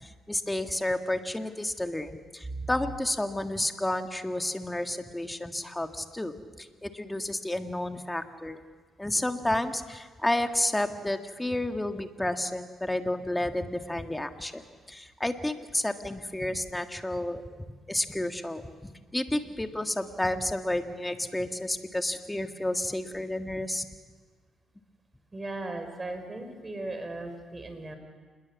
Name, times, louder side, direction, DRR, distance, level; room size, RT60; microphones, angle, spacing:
voice 1, 0.0-8.6 9.0-14.6 14.9-17.4 17.9-23.9, left 1 dB, 10° left, 6 dB, 1.8 m, -31 dB
voice 2, 25.3-27.9, right 2 dB, 20° right, 6 dB, 5.1 m, -37 dB
27.5 x 21.5 x 7.2 m, 1.5 s
cardioid pair, 90°, 0 cm